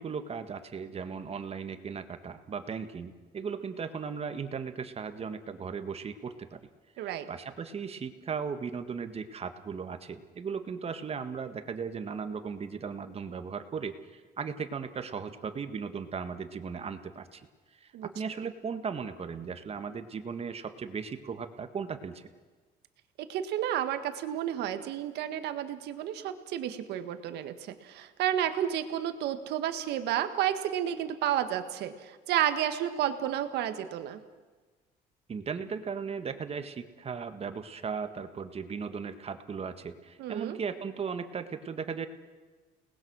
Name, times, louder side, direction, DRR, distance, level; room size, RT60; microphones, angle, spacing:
voice 1, 0.0-6.6 6.9-17.4 17.7-22.3 35.3-42.1, right 6 dB, 35° right, 9 dB, 1.7 m, -37 dB
voice 2, 7.0-7.3 17.9-18.1 23.2-34.2 40.2-40.6, right 11 dB, 80° right, 9 dB, 1.7 m, -31 dB
30.0 x 20.0 x 6.3 m, 1.4 s
cardioid pair, 110°, 17 cm